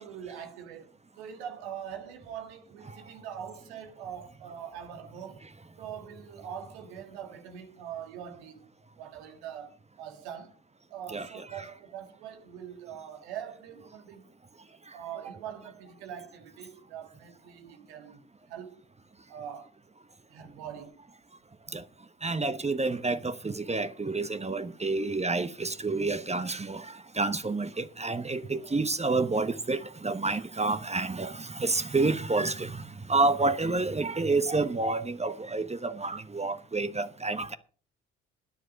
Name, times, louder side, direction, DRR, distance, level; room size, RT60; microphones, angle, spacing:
voice 1, 0.0-5.5 5.8-8.7 9.0-10.6 10.9-14.3 14.9-18.8 19.3-19.7 20.3-21.0, right 9 dB, 80° right, 1.7 m, -43 dB
voice 2, 22.2-26.8 27.2-37.6, right 3 dB, 20° right, 1.1 m, -29 dB
12.5 x 10.0 x 5.2 m
hypercardioid pair, 50°, 32 cm